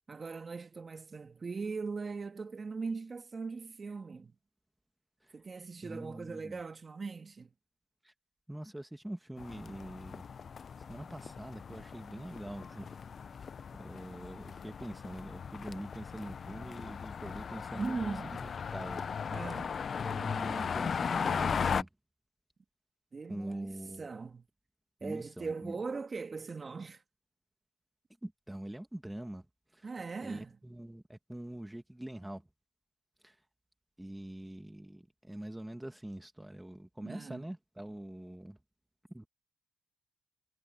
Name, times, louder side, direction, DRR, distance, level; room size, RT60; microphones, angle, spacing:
voice 1, 0.1-4.3 5.3-7.5 17.7-18.4 19.3-19.7 23.1-24.5 25.0-27.0 29.8-30.6 37.0-37.4, right 4 dB, 35° right, 2.1 m, -40 dB
voice 2, 5.8-6.6 8.0-8.1 8.5-10.2 10.9-12.9 13.3-18.0 18.4-19.0 19.6-19.7 20.0-21.9 23.3-24.1 25.0-25.8 28.2-29.5 29.7-29.9 30.2-32.4 33.2-33.4 34.0-38.6 39.1-39.3, right 1 dB, 5° right, 1.7 m, -44 dB
sound 1, 9.4-21.8, left 6 dB, 45° left, 0.6 m, -37 dB
cardioid pair, 90°, 0 cm